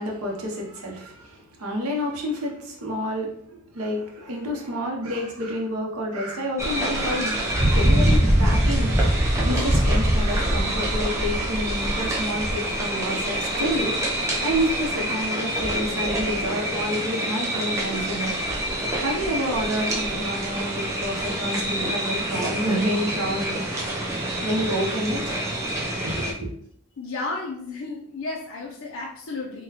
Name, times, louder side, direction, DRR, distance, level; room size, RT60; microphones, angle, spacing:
voice 1, 0.0-13.9 14.4-18.3 18.9-24.0 24.4-25.2 26.0-26.5, equal, 75° right, 0 dB, 0.7 m, -29 dB
sound 1, 6.6-26.3, right 1 dB, 15° right, 0.4 m, -25 dB
voice 2, 27.0-29.6, left 3 dB, 60° left, -3 dB, 0.5 m, -33 dB
3.8 x 2.1 x 2.8 m, 0.68 s
head